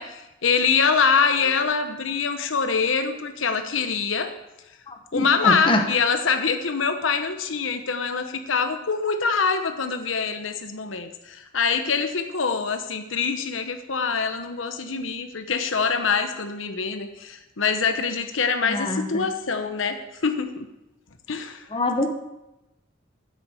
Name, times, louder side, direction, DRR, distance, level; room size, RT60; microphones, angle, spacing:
voice 1, 0.0-4.3 5.1-20.7 21.3-21.6, left 5 dB, 80° left, 7 dB, 1.0 m, -24 dB
voice 2, 4.9-5.8 18.6-19.3 21.7-22.1, left 2 dB, 25° left, 4 dB, 1.1 m, -25 dB
10.0 x 7.9 x 6.3 m, 0.94 s
head